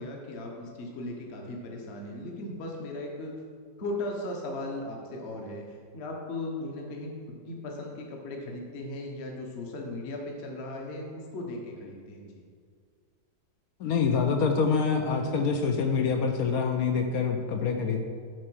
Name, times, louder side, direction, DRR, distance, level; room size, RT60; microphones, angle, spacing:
voice 1, 0.0-3.3 3.8-12.3, left 2 dB, 45° left, 0 dB, 1.1 m, -37 dB
voice 2, 13.8-18.0, left 5 dB, 70° left, 5 dB, 0.9 m, -26 dB
7.7 x 4.3 x 6.2 m, 2.1 s
omnidirectional pair, 1.9 m